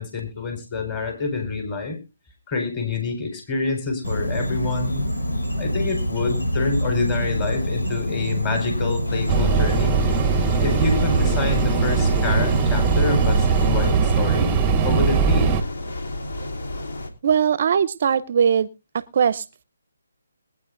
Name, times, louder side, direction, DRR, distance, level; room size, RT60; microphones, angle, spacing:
voice 1, 0.0-2.0 2.5-5.0 5.6-9.9 10.6-14.5 14.8-15.6, left 4 dB, 20° left, 4.4 m, -27 dB
Insect, 4.0-13.9, equal, 85° left, 7.1 m, -26 dB
sound 1, 9.0-17.1, left 2 dB, 60° left, 3.1 m, -32 dB
sound 2, 9.3-15.6, right 6 dB, 15° right, 0.8 m, -20 dB
voice 2, 17.2-18.7 18.9-19.6, right 7 dB, 45° right, 0.6 m, -20 dB
22.0 x 9.5 x 2.5 m
hypercardioid pair, 160°, 0 cm